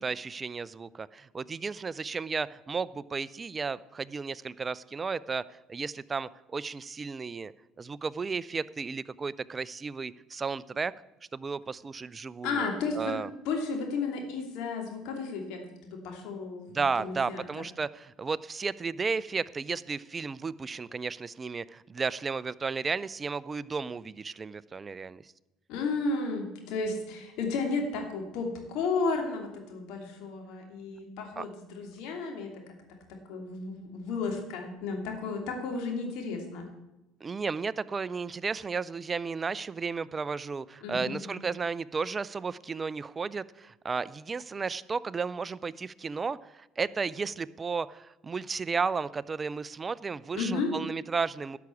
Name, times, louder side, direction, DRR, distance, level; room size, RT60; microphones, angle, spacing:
voice 1, 0.0-7.5 7.8-10.9 11.3-12.7 12.9-13.3 16.7-25.3 31.4-31.5 37.2-51.6, right 5 dB, 30° right, 18 dB, 0.4 m, -33 dB
voice 2, 12.4-13.1 13.4-17.4 25.7-32.5 33.3-36.7 40.8-41.2 50.3-50.7, left 4 dB, 70° left, 2 dB, 2.7 m, -33 dB
11.5 x 6.0 x 8.3 m, 0.97 s
supercardioid pair, 80°, 0 cm